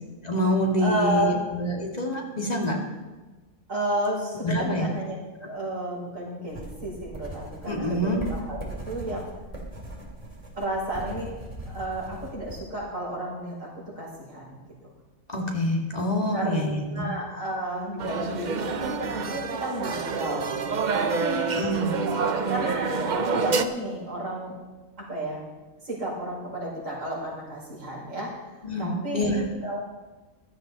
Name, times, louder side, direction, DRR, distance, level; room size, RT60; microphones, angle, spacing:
voice 1, 0.2-2.8 4.4-4.9 7.7-8.2 15.3-17.0 21.5-22.0 28.6-29.4, equal, 30° left, 0 dB, 2.2 m, -26 dB
voice 2, 0.8-1.4 3.7-9.3 10.5-11.3 11.7-14.6 16.3-21.5 22.2-24.5 25.0-25.4 25.8-28.3 28.8-29.8, right 1 dB, 60° right, -6 dB, 5.7 m, -32 dB
sound 1, 6.5-12.5, right 1 dB, 25° right, 2.6 m, -39 dB
sound 2, 18.0-23.6, right 4 dB, 45° right, 0.6 m, -27 dB
15.5 x 12.0 x 4.1 m, 1.2 s
omnidirectional pair, 1.5 m